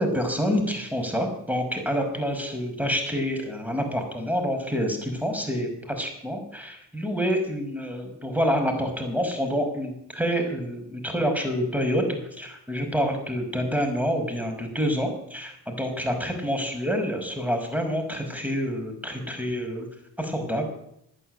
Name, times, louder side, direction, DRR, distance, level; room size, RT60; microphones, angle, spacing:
voice 1, 0.0-19.9 20.2-20.7, equal, 5° right, 4 dB, 5.5 m, -27 dB
11.5 x 9.7 x 9.4 m, 0.75 s
supercardioid pair, 45°, 47 cm